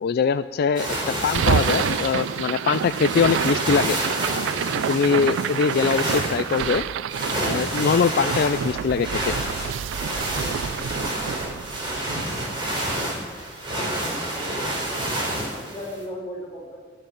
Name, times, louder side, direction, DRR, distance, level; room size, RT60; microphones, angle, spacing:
voice 1, 0.0-4.0 4.9-6.8 7.5-9.4, left 6 dB, 55° left, 12 dB, 0.3 m, -22 dB
sound 1, 0.7-16.0, right 1 dB, 25° right, 4.2 m, -29 dB
sound 2, 1.3-13.5, right 8 dB, 70° right, 0.3 m, -28 dB
voice 2, 13.7-14.7 15.3-16.8, left 1 dB, 15° left, -5 dB, 5.2 m, -37 dB
14.5 x 6.7 x 9.8 m, 1.4 s
head